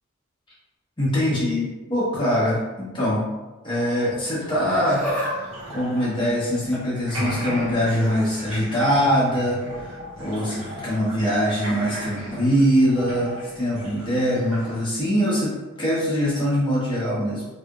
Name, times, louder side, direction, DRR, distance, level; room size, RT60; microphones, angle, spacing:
voice 1, 1.0-3.2 3.6-17.4, equal, 25° left, -7 dB, 1.1 m, -23 dB
sound 1, 3.7-6.7 7.0-14.8, equal, 80° right, 1.0 m, -36 dB
Laughter, 4.5-5.3 5.6-7.0 7.9-8.3 9.6-9.8 10.7-10.8, equal, 5° left, 0.7 m, -31 dB
3.2 x 2.9 x 2.4 m, 1.1 s
head